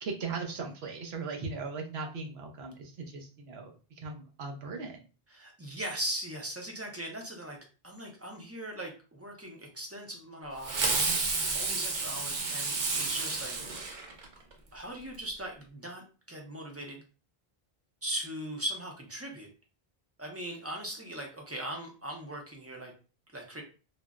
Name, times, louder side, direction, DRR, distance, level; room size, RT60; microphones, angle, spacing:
voice 1, 0.0-5.0, right 4 dB, 85° right, 2 dB, 0.9 m, -38 dB
voice 2, 5.3-7.6 7.8-11.0 11.5-13.6 14.7-17.0 18.0-19.5 20.2-22.9 23.3-23.6, right 1 dB, 20° right, 1 dB, 0.4 m, -39 dB
Fireworks, 10.6-14.5, right 3 dB, 55° right, 0.7 m, -31 dB
3.7 x 2.0 x 2.3 m, 0.35 s
omnidirectional pair, 1.0 m